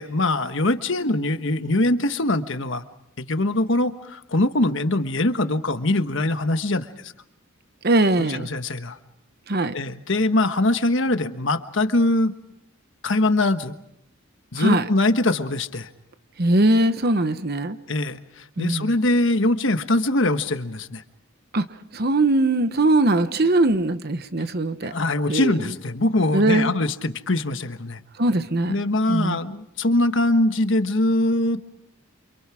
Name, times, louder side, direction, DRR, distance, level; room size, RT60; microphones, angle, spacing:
voice 1, 0.0-2.8 3.2-6.9 8.2-9.0 9.7-12.3 13.0-13.8 14.5-15.9 17.9-21.0 24.8-28.0 28.7-31.8, left 2 dB, 60° left, 1.3 m, -22 dB
voice 2, 7.8-8.5 9.5-9.7 14.6-14.9 16.4-17.8 18.6-18.9 21.5-21.6 21.9-24.9 25.3-25.5 26.3-26.7 28.2-28.8 29.1-29.4, right 2 dB, 45° right, 1.0 m, -20 dB
29.0 x 27.5 x 4.9 m
head